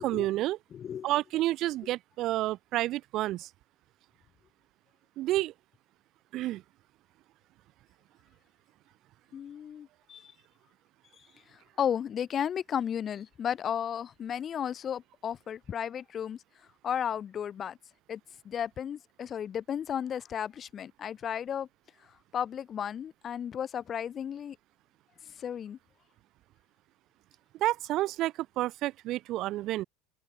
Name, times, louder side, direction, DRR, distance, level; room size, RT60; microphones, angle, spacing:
voice 1, 0.0-0.6 1.0-3.5 5.2-5.5 6.3-6.6 27.6-29.8, right 16 dB, 45° right, 3.5 m, -30 dB
voice 2, 0.7-1.1 9.3-10.3 11.2-16.4 16.8-17.8 18.1-18.2 18.4-21.7 22.3-24.6 25.4-25.8, left 8 dB, 35° left, 1.5 m, -34 dB
figure-of-eight pair, 70°, 0 cm